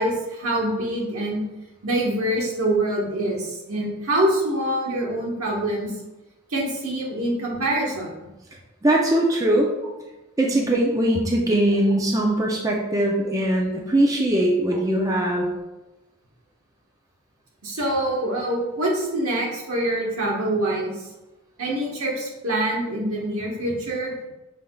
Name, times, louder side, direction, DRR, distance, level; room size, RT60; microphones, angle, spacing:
voice 1, 0.0-1.4 1.8-5.9 6.5-8.1 17.6-21.0 21.6-24.1, right 1 dB, 80° right, -3 dB, 1.3 m, -25 dB
voice 2, 8.8-9.7 10.4-15.5, right 1 dB, 15° right, -2 dB, 0.4 m, -21 dB
6.2 x 3.5 x 2.3 m, 1.1 s
head